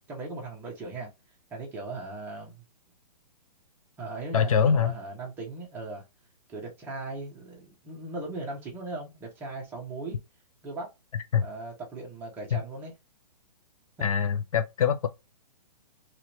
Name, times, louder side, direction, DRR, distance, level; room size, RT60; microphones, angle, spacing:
voice 1, 0.1-1.1 1.5-2.6 4.0-6.0 6.5-10.2 10.6-10.9 11.4-12.9 14.0-14.1, right 2 dB, 10° right, 0.8 m, -38 dB
voice 2, 4.3-4.9 11.3-11.4 12.5-12.6 14.0-15.1, left 7 dB, 55° left, 0.5 m, -23 dB
3.1 x 3.0 x 2.8 m
hypercardioid pair, 165°, 21 cm